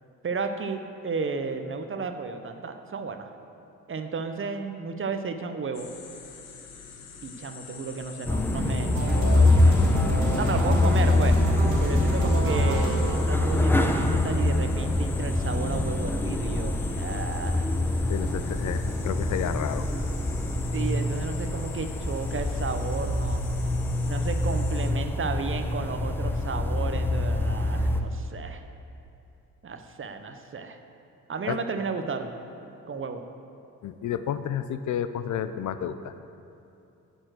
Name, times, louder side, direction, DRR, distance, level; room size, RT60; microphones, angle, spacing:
voice 1, 0.2-3.3 3.9-5.9 7.2-9.8 10.4-11.4 11.8-17.7 20.7-23.4 24.0-28.6 29.6-30.8 31.3-32.3 32.9-33.2, right 4 dB, 35° right, 7 dB, 0.8 m, -33 dB
sound 1, 5.7-24.9, left 6 dB, 90° left, 0.8 m, -44 dB
sound 2, 8.3-28.0, left 1 dB, 5° left, 0.8 m, -25 dB
sound 3, 8.9-14.9, right 1 dB, 85° right, 1.2 m, -32 dB
voice 2, 18.1-19.9 31.5-31.6 33.8-36.1, left 9 dB, 55° left, 11 dB, 0.5 m, -31 dB
10.0 x 4.3 x 6.2 m, 2.8 s
supercardioid pair, 50°, 35 cm